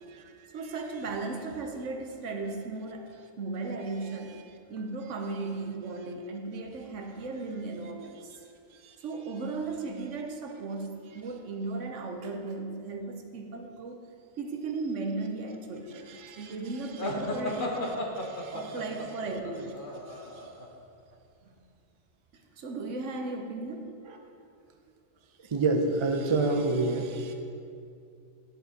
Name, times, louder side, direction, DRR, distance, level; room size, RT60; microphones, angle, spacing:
voice 1, 0.5-3.1 3.4-4.4 4.7-8.3 9.0-14.0 14.4-18.0 18.5-19.8 22.3-24.0, right 3 dB, 65° right, 4 dB, 1.1 m, -36 dB
voice 2, 16.1-16.5 18.3-18.5 24.1-24.2 25.5-27.3, right 3 dB, 45° right, 4 dB, 0.4 m, -28 dB
sound 1, 17.0-20.7, left 1 dB, 40° left, 1.1 m, -34 dB
10.0 x 6.6 x 4.1 m, 2.5 s
omnidirectional pair, 1.4 m